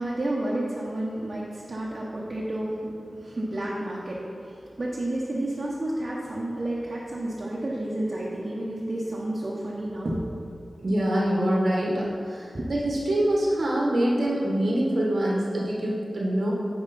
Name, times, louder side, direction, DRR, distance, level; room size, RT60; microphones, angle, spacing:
voice 1, 0.0-10.2 12.5-12.6, right 1 dB, 50° right, -7 dB, 1.0 m, -31 dB
voice 2, 10.8-16.5, right 1 dB, 75° right, -4 dB, 1.2 m, -25 dB
9.1 x 4.8 x 4.1 m, 2.5 s
wide cardioid pair, 75°, 0 cm